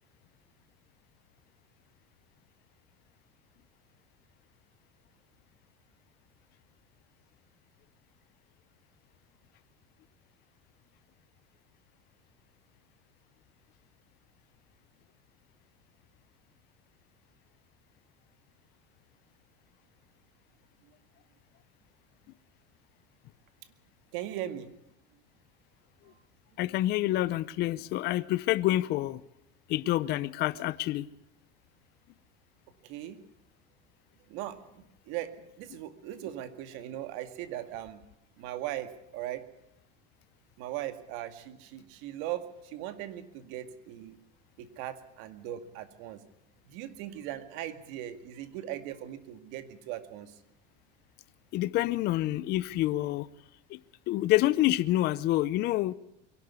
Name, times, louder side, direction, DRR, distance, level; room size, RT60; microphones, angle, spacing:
voice 1, 24.1-24.7 32.8-33.2 34.3-38.0 38.4-39.5 40.6-44.2 44.6-46.2 46.7-50.4, right 12 dB, 65° right, 2.2 m, -39 dB
voice 2, 26.6-29.2 29.7-31.1 51.5-53.3 53.7-53.8 54.1-55.9, left 16 dB, 50° left, 0.7 m, -27 dB
23.0 x 12.0 x 9.6 m
supercardioid pair, 125°, 21 cm